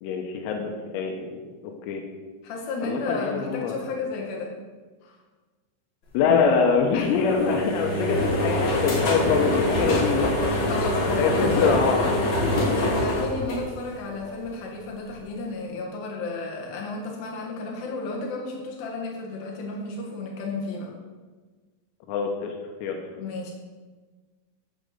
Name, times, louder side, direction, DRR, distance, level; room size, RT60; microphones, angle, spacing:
voice 1, 0.0-1.4 1.9-2.0 2.8-3.7 6.2-10.3 11.2-12.8 22.1-22.5 22.8-23.0, left 5 dB, 85° left, 3 dB, 3.7 m, -24 dB
voice 2, 2.4-4.6 5.0-5.2 6.9-7.1 9.8-9.9 10.7-11.9 12.6-20.9 23.2-23.5, left 3 dB, 60° left, -1 dB, 3.9 m, -33 dB
sound 1, 6.9-14.2, left 1 dB, 40° left, 3.8 m, -25 dB
15.5 x 5.1 x 7.0 m, 1.4 s
omnidirectional pair, 6.0 m